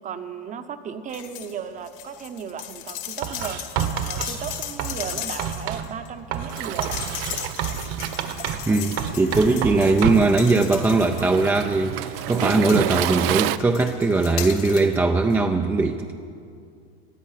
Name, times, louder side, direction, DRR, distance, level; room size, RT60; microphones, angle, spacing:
voice 1, 0.0-3.6 4.0-7.0 9.5-9.7, right 7 dB, 25° right, 10 dB, 0.9 m, -35 dB
sound 1, 1.1-1.5 1.8-11.6 12.1-15.0 15.3-15.4, left 12 dB, 65° left, 1.9 m, -37 dB
Writing, 3.2-5.9 6.3-8.7 9.0-10.4, right 9 dB, 50° right, 1.3 m, -29 dB
Waves surf, 6.5-13.6, right 14 dB, 80° right, 0.6 m, -30 dB
voice 2, 8.7-16.1, right 3 dB, 10° right, 4 dB, 0.5 m, -20 dB
19.0 x 12.5 x 5.8 m, 2.4 s
supercardioid pair, 135°, 29 cm